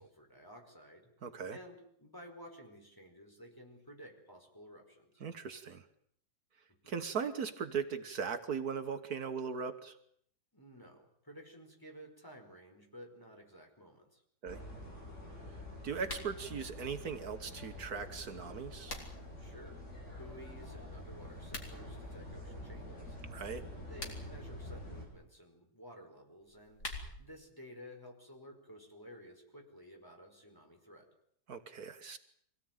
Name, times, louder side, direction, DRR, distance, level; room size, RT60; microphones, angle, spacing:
voice 1, 0.0-1.1 1.5-5.2 6.8-7.0 10.5-14.2 19.4-19.8 20.2-23.2 23.7-31.1, equal, 10° left, 2 dB, 4.9 m, -54 dB
voice 2, 1.2-1.6 5.2-5.8 6.9-10.0 14.4-14.6 15.8-18.9 23.3-23.6 31.5-32.2, right 6 dB, 70° right, 8 dB, 1.8 m, -39 dB
sound 1, 14.5-25.1, left 1 dB, 45° left, 7.6 m, -47 dB
sound 2, 16.0-16.3 18.4-19.3 21.4-21.7 23.8-24.4 26.4-27.4, left 2 dB, 80° left, 4.5 m, -45 dB
25.0 x 17.5 x 9.2 m, 0.68 s
omnidirectional pair, 1.7 m